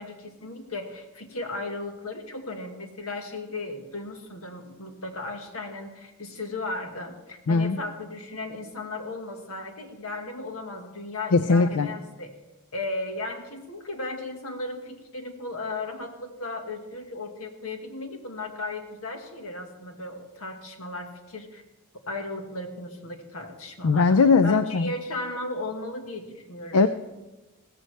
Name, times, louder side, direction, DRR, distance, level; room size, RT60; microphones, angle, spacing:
voice 1, 0.0-12.3 12.7-21.6 22.1-24.0 24.4-26.9, left 2 dB, 70° left, 4 dB, 1.6 m, -36 dB
voice 2, 7.5-7.8 11.3-11.9 23.8-24.9 26.7-26.9, left 4 dB, 90° left, 11 dB, 0.5 m, -19 dB
16.0 x 14.0 x 3.4 m, 1.1 s
head